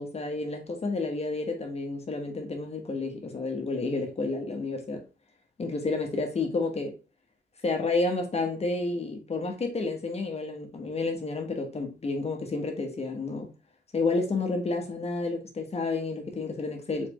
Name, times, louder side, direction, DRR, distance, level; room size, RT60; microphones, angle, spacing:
voice 1, 0.0-5.0 5.6-6.9 7.6-13.5 13.9-17.1, left 3 dB, 40° left, 1.2 m, -30 dB
4.1 x 4.1 x 3.1 m
wide cardioid pair, 125°, 17 cm